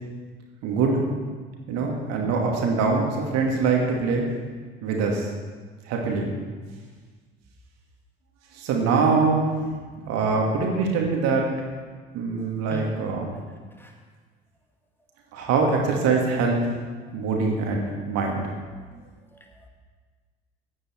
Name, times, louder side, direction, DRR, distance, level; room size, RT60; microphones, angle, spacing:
voice 1, 0.6-1.0 1.7-4.3 4.8-5.3 5.8-6.3 8.5-9.7 10.1-11.5 12.1-13.3 15.3-16.6 17.1-18.4, right 4 dB, 55° right, 0 dB, 2.5 m, -23 dB
voice 2, 12.7-13.0 13.8-13.9 18.9-19.0 19.3-19.7, equal, 5° left, 1 dB, 2.2 m, -39 dB
15.0 x 9.4 x 4.6 m, 1.5 s
figure-of-eight pair, 60°, 32 cm